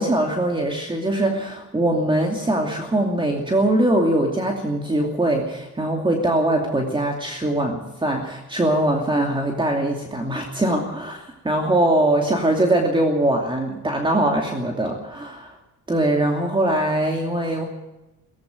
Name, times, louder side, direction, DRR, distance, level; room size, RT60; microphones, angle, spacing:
voice 1, 0.0-15.5 15.9-17.6, right 1 dB, 15° right, 1 dB, 2.7 m, -22 dB
17.5 x 16.0 x 9.3 m, 0.99 s
cardioid pair, 125°, 32 cm